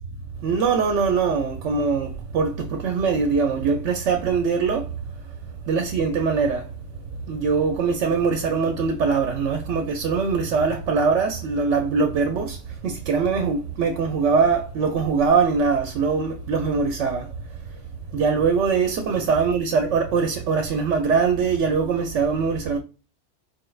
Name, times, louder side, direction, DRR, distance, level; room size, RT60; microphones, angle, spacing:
voice 1, 0.4-2.1 2.3-4.9 5.7-6.6 7.3-12.6 12.8-17.3 18.1-22.8, right 5 dB, 80° right, 0.9 m, -22 dB
4.9 x 2.3 x 3.2 m
omnidirectional pair, 1.2 m